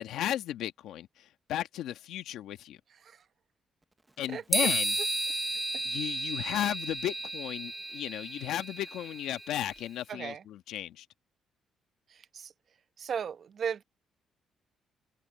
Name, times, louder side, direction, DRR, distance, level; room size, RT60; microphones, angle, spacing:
voice 1, 0.0-2.8 4.2-4.9 5.8-11.1, left 12 dB, 85° left, 1.3 m, -35 dB
voice 2, 2.9-3.3 4.3-4.7 5.7-5.8 10.1-10.4 12.1-12.5 13.0-13.8, right 7 dB, 55° right, 0.8 m, -37 dB
sound 1, 4.5-9.8, right 2 dB, 15° right, 0.8 m, -33 dB
open air
cardioid pair, 90°, 0 cm